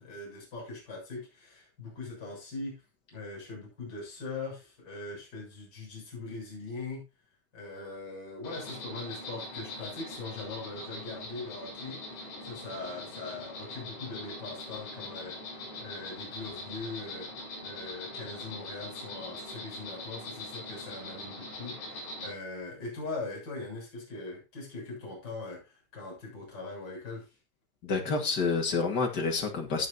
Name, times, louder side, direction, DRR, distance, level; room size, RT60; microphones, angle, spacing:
voice 1, 0.0-2.8 3.1-7.0 7.5-17.3 17.6-27.4, left 3 dB, 20° left, 7.2 m, -41 dB
Insect, 8.4-22.3, left 2 dB, 60° left, 9.6 m, -42 dB
voice 2, 27.8-29.9, left 4 dB, 90° left, 0.9 m, -28 dB
15.0 x 9.4 x 2.8 m
omnidirectional pair, 5.6 m